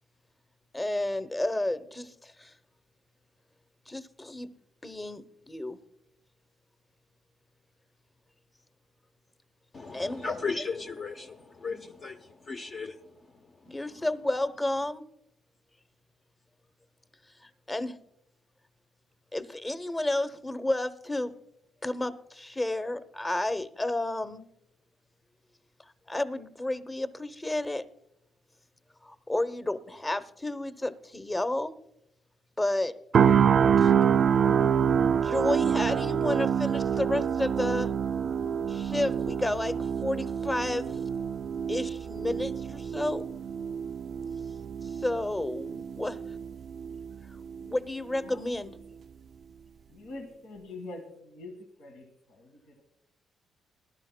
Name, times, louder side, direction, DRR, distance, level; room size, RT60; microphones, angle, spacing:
voice 1, 0.7-2.5 3.9-4.5 4.8-5.8 9.9-10.3 13.6-15.0 17.4-18.0 19.3-21.3 21.8-24.4 26.1-27.8 29.0-31.7 32.6-33.0 33.8-34.0 35.2-37.9 38.7-41.0 41.7-43.3 44.8-46.2 47.6-48.7, left 1 dB, 15° left, 11 dB, 0.8 m, -31 dB
voice 2, 9.7-14.1, left 4 dB, 45° left, 4 dB, 0.8 m, -37 dB
sound 1, 33.1-47.1 47.5-47.7, right 7 dB, 55° right, 0.3 m, -26 dB
voice 3, 48.1-48.7 49.9-52.8, left 2 dB, 85° left, 2 dB, 1.7 m, -45 dB
19.5 x 12.0 x 2.2 m, 0.76 s
cardioid pair, 90°, 0 cm